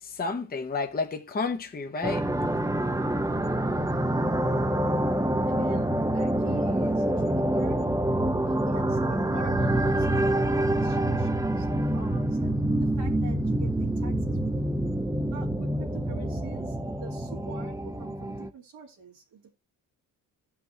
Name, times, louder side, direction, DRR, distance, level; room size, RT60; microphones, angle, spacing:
voice 1, 0.0-2.5, left 4 dB, 25° left, 0.8 m, -31 dB
sound 1, 2.0-18.5, right 1 dB, 10° right, 0.7 m, -26 dB
voice 2, 5.5-7.9 8.4-14.7 15.3-19.5, right 5 dB, 85° right, 2.7 m, -46 dB
14.5 x 5.8 x 2.8 m
cardioid pair, 75°, 39 cm